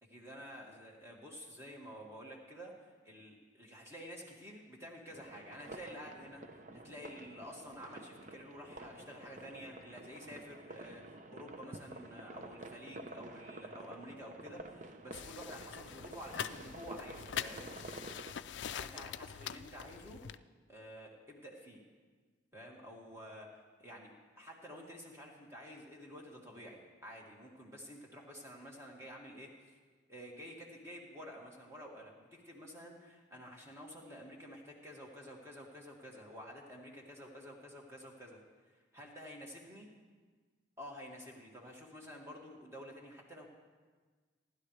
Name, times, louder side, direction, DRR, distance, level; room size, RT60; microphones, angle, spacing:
voice 1, 0.0-6.4 6.7-17.7 18.5-20.2 20.7-21.8 22.5-29.7 30.1-38.4 38.7-39.9 40.8-43.5, equal, 15° right, -1 dB, 1.9 m, -50 dB
sound 1, 5.1-18.3, right 2 dB, 40° right, 0.7 m, -50 dB
sound 2, 15.1-20.4, left 9 dB, 65° left, 0.4 m, -44 dB
26.5 x 12.0 x 3.3 m, 1.5 s
head